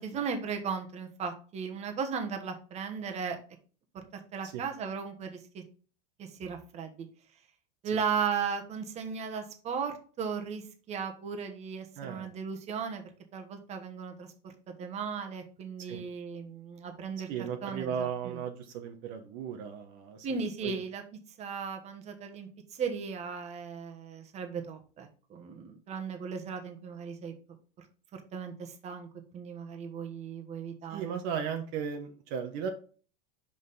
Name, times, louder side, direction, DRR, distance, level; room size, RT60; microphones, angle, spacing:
voice 1, 0.0-3.4 3.9-5.6 6.2-7.1 7.8-13.0 13.3-18.4 20.2-21.0 21.4-27.3 27.8-27.9 28.1-29.1 29.3-31.2, right 6 dB, 30° right, 5 dB, 1.3 m, -36 dB
voice 2, 12.0-12.3 15.9-16.0 17.3-20.7 30.9-32.7, right 7 dB, 55° right, 4 dB, 1.0 m, -36 dB
5.6 x 5.1 x 4.0 m, 0.40 s
supercardioid pair, 130°, 21 cm